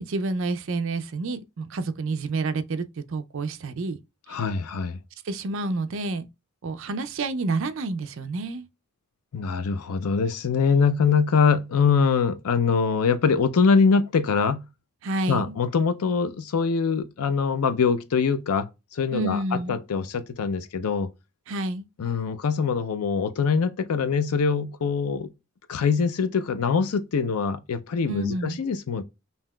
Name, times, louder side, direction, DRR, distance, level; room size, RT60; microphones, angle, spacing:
voice 1, 0.0-4.0 4.3-4.4 5.2-6.3 6.6-8.7 15.0-15.5 19.1-19.8 21.5-21.9 28.1-28.6, right 3 dB, 60° right, 0.4 m, -29 dB
voice 2, 4.3-5.0 9.3-14.6 15.3-21.1 22.0-25.3 25.7-29.0, left 5 dB, 85° left, 0.5 m, -23 dB
5.5 x 2.8 x 2.2 m
head